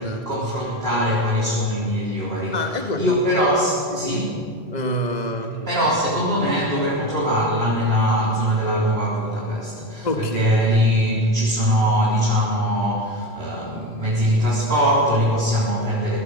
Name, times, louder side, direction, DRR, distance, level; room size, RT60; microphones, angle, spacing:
voice 1, 0.0-2.6 3.0-4.4 5.6-16.2, equal, 65° right, -7 dB, 4.3 m, -21 dB
voice 2, 2.5-3.2 3.9-4.4 4.7-5.7 10.0-10.5, left 1 dB, 40° left, 4 dB, 1.7 m, -27 dB
25.0 x 18.0 x 6.6 m, 2.2 s
omnidirectional pair, 1.1 m